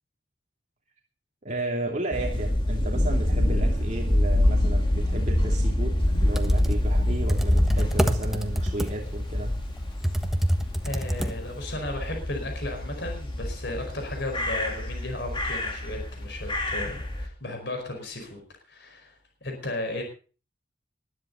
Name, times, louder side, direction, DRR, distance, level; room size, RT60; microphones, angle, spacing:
voice 1, 1.4-9.5, right 1 dB, 40° right, 0 dB, 2.8 m, -33 dB
sound 1, 2.1-17.3, left 1 dB, 25° left, 2.7 m, -26 dB
Computer keyboard, 6.1-11.7, equal, ahead, 1.3 m, -28 dB
voice 2, 10.8-18.4 18.7-19.1 19.4-20.0, left 2 dB, 60° left, 4 dB, 4.9 m, -35 dB
20.0 x 13.5 x 4.0 m, 0.38 s
head